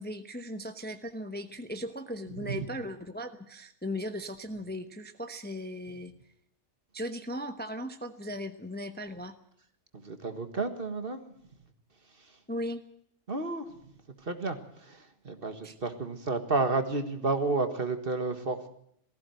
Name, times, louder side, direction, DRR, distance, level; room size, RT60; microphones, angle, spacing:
voice 1, 0.0-6.1 6.9-9.3 12.5-12.8 15.6-15.7, equal, 10° left, 8 dB, 0.9 m, -37 dB
voice 2, 9.9-11.3 13.3-13.6 14.3-18.7, right 3 dB, 45° right, 8 dB, 1.8 m, -31 dB
18.5 x 15.5 x 9.2 m, 0.69 s
omnidirectional pair, 1.3 m